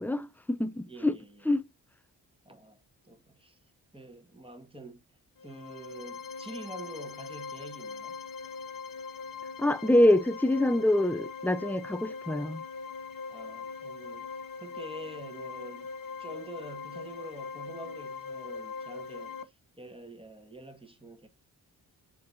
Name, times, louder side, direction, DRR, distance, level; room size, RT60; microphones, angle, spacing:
voice 1, 0.0-1.2 1.4-1.6 9.6-12.6, left 1 dB, 5° left, 0.7 m, -25 dB
voice 2, 0.9-1.4 2.5-3.6 3.9-5.0 5.4-8.2 13.3-15.9 16.2-21.3, right 1 dB, 10° right, 2.0 m, -46 dB
sound 1, 5.4-19.4, left 5 dB, 50° left, 1.0 m, -41 dB
7.3 x 4.6 x 2.8 m
supercardioid pair, 45°, 42 cm